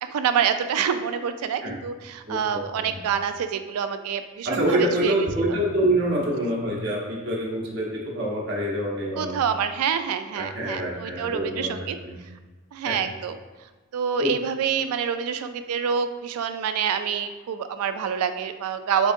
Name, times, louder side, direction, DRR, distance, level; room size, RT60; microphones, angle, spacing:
voice 1, 0.0-5.6 6.4-6.6 9.2-12.3 12.7-13.4 13.9-19.1, right 7 dB, 90° right, 10 dB, 0.3 m, -27 dB
voice 2, 4.5-9.4 10.3-11.7 12.0-12.1 12.8-13.0 14.2-14.3, right 1 dB, 50° right, -3 dB, 0.9 m, -26 dB
4.0 x 3.6 x 2.5 m, 1.3 s
head